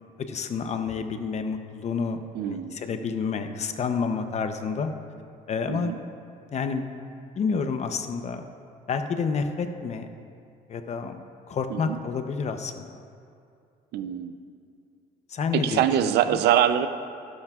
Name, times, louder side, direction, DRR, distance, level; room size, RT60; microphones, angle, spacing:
voice 1, 0.2-4.9 5.5-5.9 6.5-6.8 7.4-8.4 8.9-10.1 10.7-11.2 11.5-13.0 15.3-16.1, left 5 dB, 40° left, 7 dB, 0.7 m, -29 dB
voice 2, 2.3-2.8 5.7-6.0 11.7-12.0 13.9-14.4 15.5-16.9, right 10 dB, 75° right, 11 dB, 0.6 m, -24 dB
17.0 x 11.5 x 2.4 m, 2.5 s
cardioid pair, 110°, 17 cm